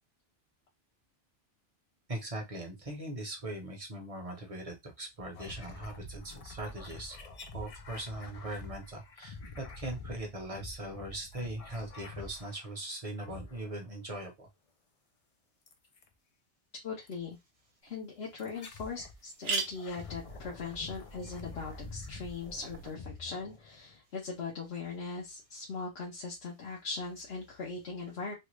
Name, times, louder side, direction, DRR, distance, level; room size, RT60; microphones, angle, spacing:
voice 1, 2.1-7.2 7.5-14.5, right 1 dB, 35° right, 2 dB, 0.9 m, -40 dB
sound 1, 5.3-12.8 13.2-14.0 15.7-16.1 17.1-17.2 18.4-19.2 19.6-24.0, left 3 dB, 45° left, 0.5 m, -47 dB
voice 2, 16.8-17.4 17.8-28.3, left 4 dB, 60° left, -3 dB, 1.1 m, -40 dB
sound 2, 17.9-18.0 18.4-18.5 18.7-18.8 19.2-22.9, right 4 dB, 65° right, 1.0 m, -40 dB
3.2 x 2.4 x 3.0 m, 0.19 s
omnidirectional pair, 1.2 m